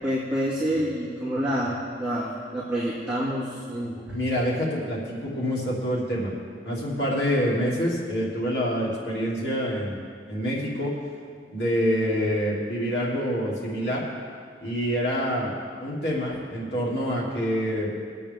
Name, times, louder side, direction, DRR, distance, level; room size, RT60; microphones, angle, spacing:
voice 1, 0.0-4.0, equal, 5° right, -11 dB, 2.3 m, -28 dB
voice 2, 4.1-6.3 6.6-10.0 10.3-10.9 11.5-14.0 14.6-15.5 15.8-18.1, equal, 65° left, -6 dB, 2.8 m, -26 dB
23.0 x 8.4 x 3.7 m, 2.1 s
head